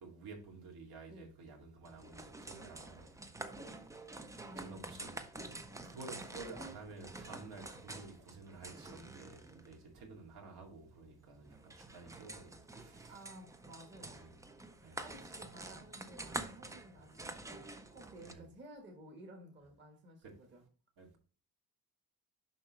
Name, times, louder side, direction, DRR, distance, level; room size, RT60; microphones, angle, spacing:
voice 1, 0.0-3.7 4.6-5.1 5.8-13.2 14.1-14.3 14.8-15.0 16.9-17.2 18.2-18.5 21.0-21.2, right 3 dB, 70° right, 2.3 m, -52 dB
sound 1, 1.8-18.3, right 2 dB, 10° right, 0.4 m, -48 dB
voice 2, 4.4-5.0 5.3-5.6 13.1-14.3 14.8-20.6, equal, 30° right, 1.3 m, -55 dB
6.9 x 5.6 x 3.1 m
cardioid pair, 170°, 38 cm